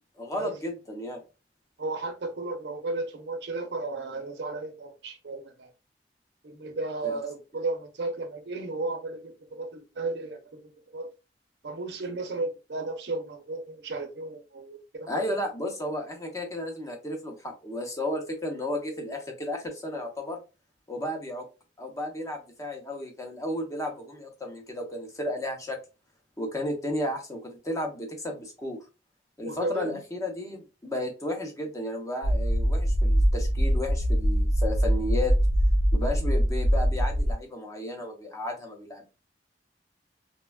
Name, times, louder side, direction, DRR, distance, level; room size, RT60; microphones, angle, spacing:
voice 1, 0.2-1.2 7.0-7.2 15.1-20.4 20.9-21.4 21.8-25.8 26.4-28.8 29.4-35.3 35.9-39.1, left 1 dB, 20° left, 0.7 m, -33 dB
voice 2, 1.8-5.7 6.4-10.4 10.9-11.1 11.6-15.1 29.4-30.0, right 3 dB, 75° right, 0.7 m, -34 dB
sound 1, 32.2-37.3, equal, 65° left, 0.5 m, -23 dB
3.2 x 2.3 x 2.2 m
head